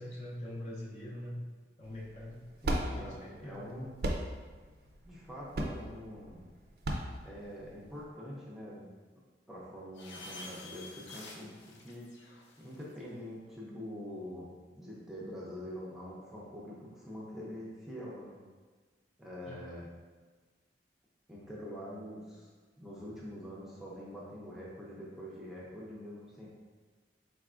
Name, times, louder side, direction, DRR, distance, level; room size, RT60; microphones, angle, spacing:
voice 1, 0.0-1.4 1.8-2.4 2.9-3.8 19.5-19.6, left 1 dB, 40° left, -4 dB, 0.6 m, -43 dB
sound 1, 1.8-8.0, right 1 dB, 55° right, 0.4 m, -36 dB
voice 2, 2.6-4.0 5.0-6.4 7.2-8.8 9.5-12.1 12.6-14.5 14.7-18.3 19.2-19.9 21.3-22.5 22.8-26.5, equal, ahead, -6 dB, 0.6 m, -45 dB
sound 2, 9.9-13.0, left 2 dB, 80° left, 0.6 m, -49 dB
4.0 x 3.4 x 2.4 m, 1.4 s
head